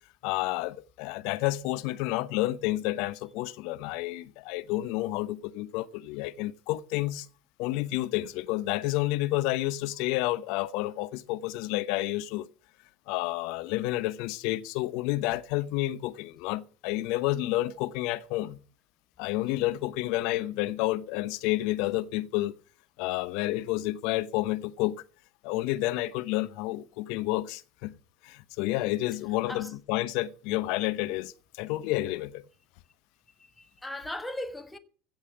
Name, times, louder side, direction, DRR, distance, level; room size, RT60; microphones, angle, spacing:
voice 1, 0.2-7.3 7.6-12.5 13.1-18.6 19.2-22.5 23.0-25.0 25.4-27.9 28.2-32.4, left 17 dB, 65° left, 0.9 m, -30 dB
voice 2, 33.4-34.8, left 1 dB, 10° left, 1.4 m, -38 dB
16.0 x 5.5 x 9.1 m
hypercardioid pair, 85°, 0 cm